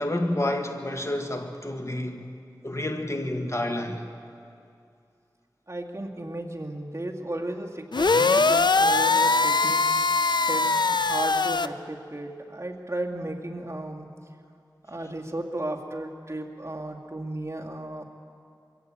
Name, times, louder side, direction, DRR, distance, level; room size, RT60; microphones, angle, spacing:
voice 1, 0.0-2.3 2.6-4.0, left 1 dB, 35° left, 1.8 m, -29 dB
voice 2, 5.7-9.8 10.5-14.1 14.9-18.0, right 1 dB, 35° right, 2.1 m, -34 dB
sound 1, 7.9-11.7, left 3 dB, 65° left, 0.6 m, -21 dB
23.0 x 16.0 x 8.7 m
wide cardioid pair, 55°, 8 cm